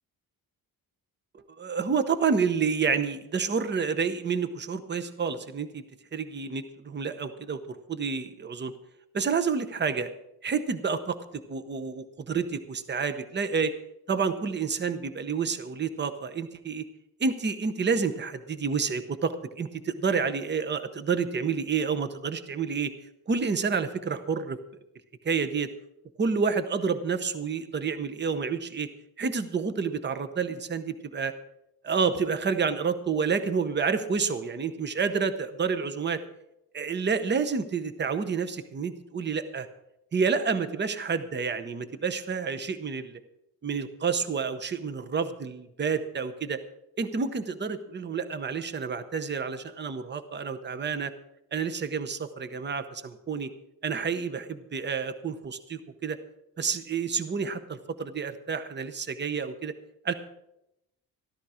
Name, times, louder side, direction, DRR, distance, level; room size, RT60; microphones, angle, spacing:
voice 1, 1.3-5.8 6.1-8.7 9.1-10.1 10.4-13.7 14.1-16.8 17.2-22.9 23.3-24.6 25.2-25.7 26.2-28.9 29.2-31.3 31.8-36.2 36.7-39.7 40.1-43.2 43.6-46.6 47.0-51.1 51.5-53.5 53.8-56.2 56.6-59.7 60.0-60.1, right 5 dB, 30° right, 11 dB, 0.8 m, -29 dB
13.5 x 13.0 x 4.9 m, 0.84 s
wide cardioid pair, 165°, 38 cm